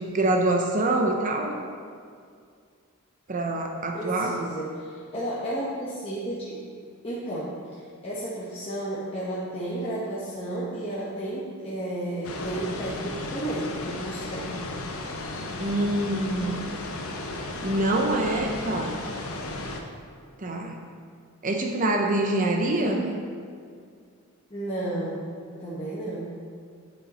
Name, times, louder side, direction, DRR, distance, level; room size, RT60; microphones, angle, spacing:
voice 1, 0.0-1.6 3.3-4.4 15.6-16.6 17.6-19.0 20.4-20.8 21.4-23.0, right 2 dB, 35° right, 2 dB, 0.6 m, -25 dB
voice 2, 3.9-6.6 7.0-7.5 8.0-14.5 22.7-23.1 24.5-25.3 25.6-26.3, right 1 dB, 25° left, -9 dB, 1.1 m, -32 dB
sound 1, 12.2-19.8, left 2 dB, 75° left, 0.8 m, -34 dB
9.5 x 5.5 x 4.2 m, 2.2 s
head